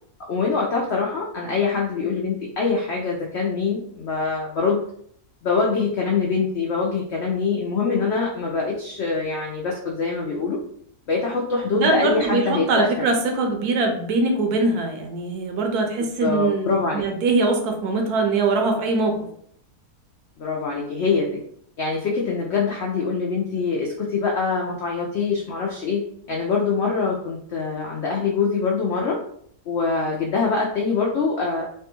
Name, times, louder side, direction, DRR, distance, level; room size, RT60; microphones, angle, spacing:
voice 1, 0.3-4.8 5.4-10.6 11.1-12.9 16.2-17.0 20.4-21.3 21.8-29.2 29.7-31.6, left 4 dB, 90° left, -2 dB, 0.5 m, -24 dB
voice 2, 11.7-19.2, right 3 dB, 75° right, 3 dB, 1.1 m, -22 dB
3.3 x 2.2 x 2.9 m, 0.66 s
omnidirectional pair, 1.7 m